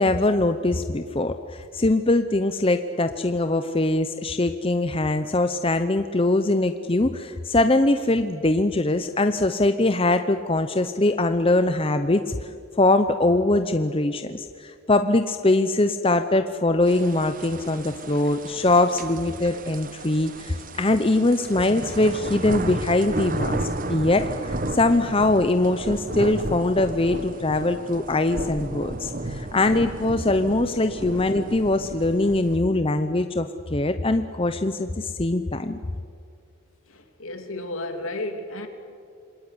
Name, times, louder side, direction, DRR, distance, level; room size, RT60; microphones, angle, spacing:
voice 1, 0.0-12.5 12.8-23.6 23.9-35.8, left 2 dB, 25° left, 9 dB, 0.7 m, -22 dB
sound 1, 16.9-32.6, right 2 dB, 40° right, 1.2 m, -33 dB
voice 2, 36.9-38.7, left 1 dB, 70° left, 5 dB, 3.2 m, -33 dB
27.0 x 21.0 x 9.8 m, 2.3 s
head